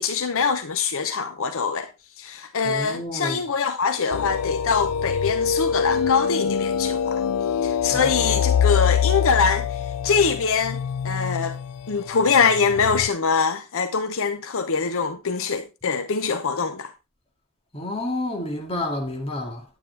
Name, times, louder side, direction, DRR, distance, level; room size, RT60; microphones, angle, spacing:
voice 1, 0.0-1.9 2.2-7.2 7.6-11.6 11.9-16.9, left 5 dB, 65° left, 0.7 m, -23 dB
voice 2, 2.6-3.5 7.9-8.4 17.7-19.6, left 1 dB, 25° left, 2.2 m, -30 dB
sound 1, 4.1-13.1, left 7 dB, 90° left, 0.4 m, -24 dB
9.4 x 9.3 x 3.3 m
head